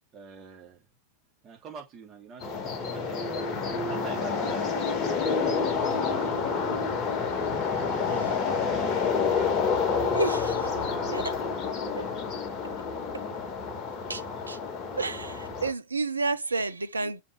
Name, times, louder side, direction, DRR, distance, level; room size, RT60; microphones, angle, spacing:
voice 1, 0.1-0.9 1.4-3.4 3.9-4.7 5.9-7.1 7.6-9.6 10.8-12.1 17.0-17.1, right 5 dB, 30° right, 3.0 m, -45 dB
sound 1, 2.4-15.7, left 5 dB, 30° left, 1.8 m, -28 dB
voice 2, 10.1-10.7 11.1-11.2 12.0-12.1 14.1-14.6 15.0-17.2, right 3 dB, 80° right, 0.7 m, -30 dB
7.2 x 4.2 x 3.3 m
figure-of-eight pair, 90°, 0 cm